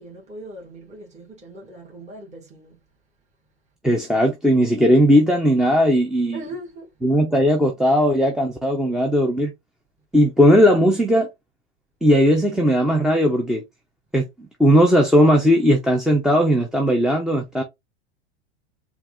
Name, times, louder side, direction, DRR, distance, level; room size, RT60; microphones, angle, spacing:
voice 1, 0.0-2.8 6.3-6.9, right 1 dB, 20° right, 1.9 m, -39 dB
voice 2, 3.8-6.4 7.0-9.5 10.1-11.3 12.0-13.6 14.1-17.6, equal, ahead, 0.6 m, -17 dB
4.6 x 2.5 x 3.6 m
hypercardioid pair, 105°, 35 cm